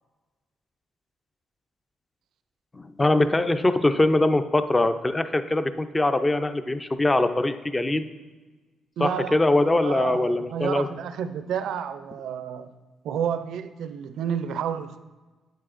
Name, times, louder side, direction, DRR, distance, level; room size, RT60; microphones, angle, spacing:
voice 1, 2.7-8.1 9.0-10.9, left 2 dB, 20° left, 10 dB, 0.4 m, -22 dB
voice 2, 9.0-12.7 13.0-15.0, right 8 dB, 75° right, 11 dB, 0.4 m, -30 dB
9.2 x 8.3 x 2.5 m, 1.2 s
cardioid pair, 90°, 0 cm